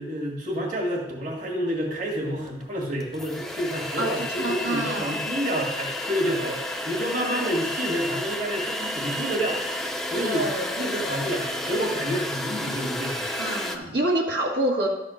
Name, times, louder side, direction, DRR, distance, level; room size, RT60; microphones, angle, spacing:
voice 1, 0.0-9.6 10.1-10.5 10.8-13.3 13.8-14.0, equal, 45° right, -1 dB, 1.9 m, -29 dB
sound 1, 2.5-2.6 3.0-13.8, left 1 dB, ahead, 0.6 m, -31 dB
voice 2, 4.0-5.1 10.2-11.1 13.4-14.9, right 1 dB, 70° right, -2 dB, 1.7 m, -27 dB
12.0 x 4.2 x 6.4 m, 0.91 s
head